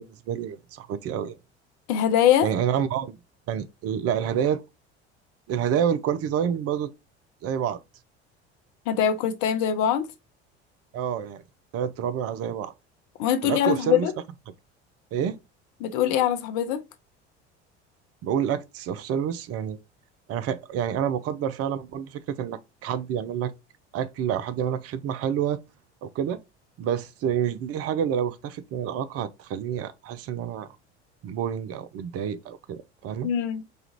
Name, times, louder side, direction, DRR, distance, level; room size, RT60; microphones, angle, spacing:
voice 1, 0.0-1.4 2.4-3.2 3.5-4.6 5.5-6.9 7.4-7.8 10.9-11.4 11.7-12.7 13.4-14.1 15.1-15.4 18.2-19.8 20.3-23.5 23.9-25.6 26.0-26.4 26.8-30.8 31.2-33.3, right 9 dB, 45° right, 0.6 m, -28 dB
voice 2, 1.9-2.5 8.9-10.1 13.2-14.1 15.8-16.8 33.2-33.6, left 9 dB, 55° left, 0.8 m, -22 dB
4.9 x 2.4 x 2.9 m
hypercardioid pair, 65°, 34 cm